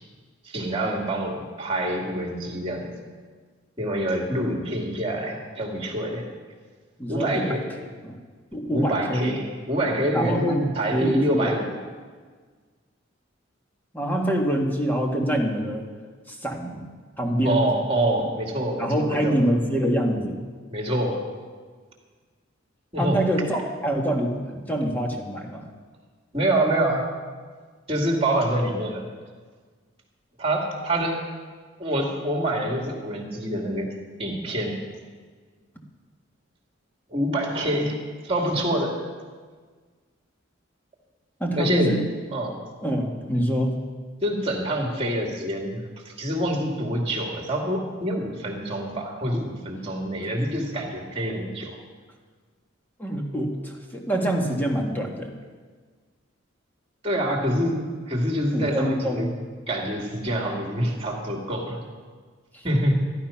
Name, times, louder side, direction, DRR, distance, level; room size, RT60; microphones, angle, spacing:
voice 1, 0.4-2.9 3.8-6.3 7.1-7.6 8.7-11.8 17.4-19.4 20.7-21.3 22.9-23.2 26.3-27.1 27.9-29.0 30.4-31.2 31.8-33.9 34.2-34.8 37.1-39.0 41.6-42.0 42.3-42.7 44.2-51.8 57.0-57.8 58.1-59.3 59.7-61.8 62.6-63.1, right 1 dB, 30° right, 1 dB, 2.5 m, -26 dB
voice 2, 7.0-7.6 8.0-8.2 8.5-9.3 10.1-11.5 13.9-15.8 16.3-16.9 17.2-17.7 18.8-20.4 23.0-25.7 41.4-42.0 42.8-43.8 53.0-55.3 58.5-59.3 62.5-62.6, right 1 dB, 10° left, 0 dB, 1.6 m, -25 dB
13.0 x 12.0 x 5.8 m, 1.5 s
head